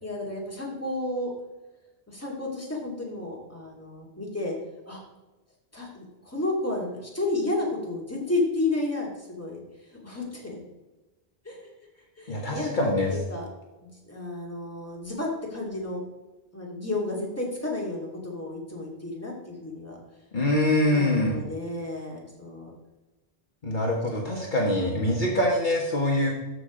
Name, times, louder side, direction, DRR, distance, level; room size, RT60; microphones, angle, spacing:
voice 1, 0.0-1.3 2.1-4.5 4.9-5.0 5.7-10.6 11.4-11.7 12.2-12.7 13.1-13.4 13.8-16.0 16.5-20.0 20.8-22.7, left 2 dB, 15° left, -3 dB, 2.4 m, -32 dB
voice 2, 12.3-13.1 20.3-21.4 23.6-26.3, left 1 dB, 50° left, -2 dB, 1.6 m, -24 dB
13.5 x 4.8 x 5.0 m, 1.1 s
omnidirectional pair, 1.1 m